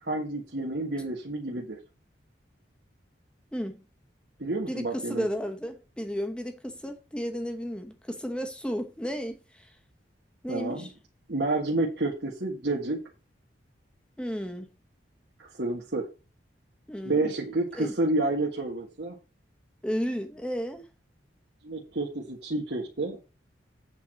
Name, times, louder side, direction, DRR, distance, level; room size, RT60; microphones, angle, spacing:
voice 1, 0.1-1.8 4.4-5.3 10.5-10.9 11.3-13.0 15.6-16.0 17.0-19.1 21.6-23.2, right 2 dB, 65° right, 1.5 m, -29 dB
voice 2, 3.5-3.8 4.7-9.7 10.4-10.9 14.2-14.7 16.9-17.3 17.7-17.9 19.8-20.8, equal, 5° left, 1.0 m, -33 dB
8.2 x 4.5 x 6.4 m
head